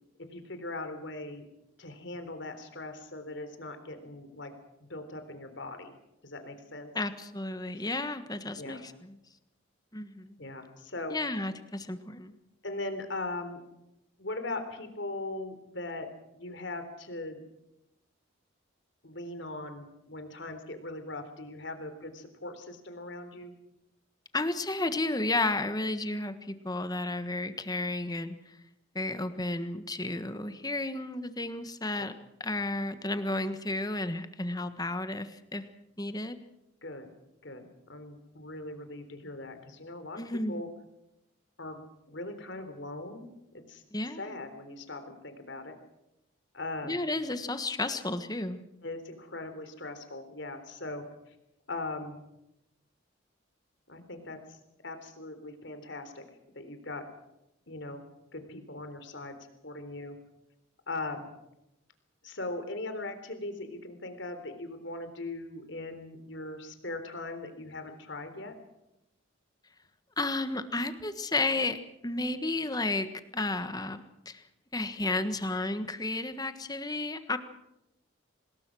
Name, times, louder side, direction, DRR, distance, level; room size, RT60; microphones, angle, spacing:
voice 1, 0.2-1.4 1.8-4.5 4.8-6.0 6.2-6.9 7.7-7.8 8.6-8.8 10.4-11.2 12.6-13.6 14.2-16.1 16.3-17.4 19.0-23.5 32.0-32.1 36.8-37.1 37.4-40.7 41.6-43.3 43.7-43.8 44.2-45.8 46.5-47.0 48.8-51.0 51.7-52.2 53.9-54.6 54.8-56.2 56.5-57.1 57.7-58.0 58.3-59.4 59.6-60.2 60.9-61.3 62.2-68.5, left 2 dB, 60° left, 8 dB, 3.8 m, -40 dB
voice 2, 6.9-9.2 9.9-10.4 11.1-12.3 24.3-28.4 28.9-32.1 32.4-35.6 36.0-36.4 40.2-40.6 43.9-44.4 46.8-48.6 70.2-74.0 74.2-74.4 74.7-77.4, left 2 dB, 20° left, 10 dB, 1.5 m, -32 dB
26.0 x 20.0 x 6.3 m, 0.87 s
head